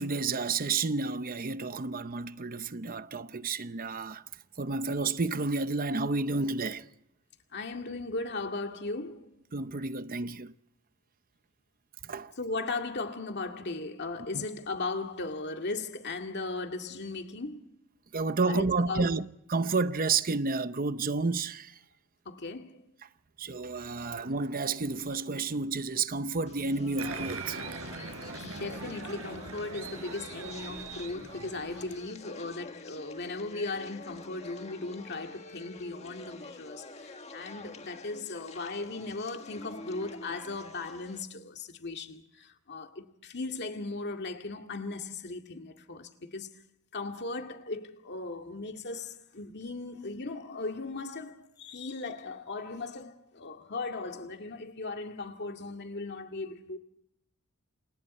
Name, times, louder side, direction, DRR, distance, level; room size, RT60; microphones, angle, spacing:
voice 1, 0.0-4.2 4.6-6.9 9.5-10.5 12.0-12.3 14.3-14.5 18.1-21.8 23.4-27.6, right 3 dB, 40° right, 0.8 m, -31 dB
voice 2, 7.5-9.3 12.4-17.7 18.4-19.1 22.3-22.8 28.4-46.5 46.9-56.8, left 3 dB, 50° left, 2.1 m, -37 dB
sound 1, 26.5-41.2, left 3 dB, 30° left, 1.7 m, -48 dB
Applause, 27.0-32.0, right 3 dB, 70° right, 5.0 m, -41 dB
29.0 x 29.0 x 4.3 m
head